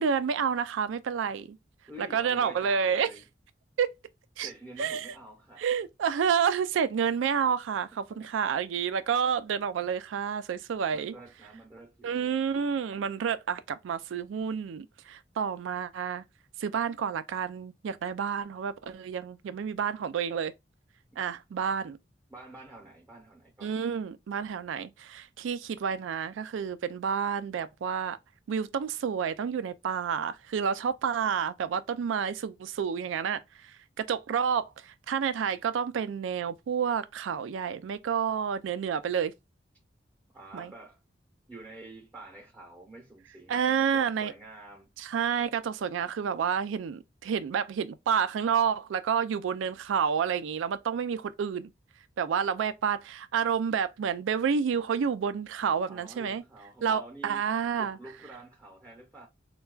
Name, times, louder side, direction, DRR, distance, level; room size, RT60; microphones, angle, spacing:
voice 1, 0.0-1.6 2.0-3.1 3.8-3.9 4.4-4.5 4.8-5.1 5.6-11.1 12.0-16.2 16.6-20.5 21.2-22.0 23.6-28.2 28.5-39.3 40.5-40.7 43.5-44.3 45.0-51.7 52.2-56.4 56.8-58.0, right 7 dB, 90° right, 0.3 m, -29 dB
voice 2, 1.9-3.2 4.4-5.7 7.7-7.8 8.1-8.5 10.9-12.3 15.9-16.0 21.1-21.2 22.3-23.7 40.3-41.0 41.5-44.9 55.9-57.5 57.8-59.3, right 1 dB, 10° right, 0.7 m, -48 dB
4.3 x 2.3 x 2.3 m
head